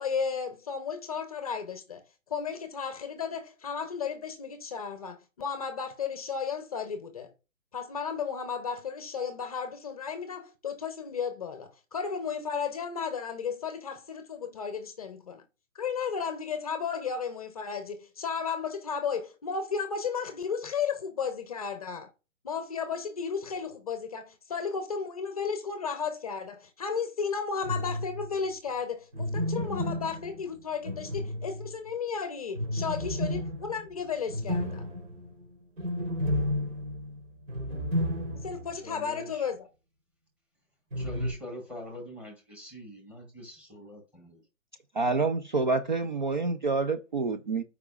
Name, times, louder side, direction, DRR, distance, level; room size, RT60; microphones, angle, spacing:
voice 1, 0.0-2.0 2.3-7.3 7.7-15.4 15.7-22.1 22.4-34.8 38.3-39.7, left 6 dB, 30° left, 0.7 m, -34 dB
sound 1, 27.6-28.4 29.1-31.9 32.5-38.8 39.0-39.1 40.9-41.3, left 1 dB, 65° right, 3.5 m, -32 dB
voice 2, 38.8-39.5 41.0-44.4, left 1 dB, 5° right, 1.3 m, -44 dB
voice 3, 45.0-47.6, right 3 dB, 40° right, 0.4 m, -27 dB
13.0 x 4.8 x 2.4 m
hypercardioid pair, 155°, 40 cm